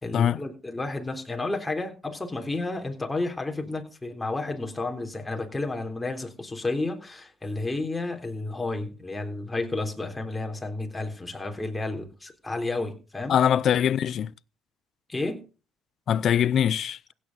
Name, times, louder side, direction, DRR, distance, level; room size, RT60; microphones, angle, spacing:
voice 1, 0.0-13.4 15.1-15.4, left 2 dB, 15° left, 3.6 m, -31 dB
voice 2, 13.3-14.3 16.1-17.0, left 9 dB, 60° left, 0.6 m, -22 dB
16.0 x 8.7 x 4.1 m
supercardioid pair, 65°, 0 cm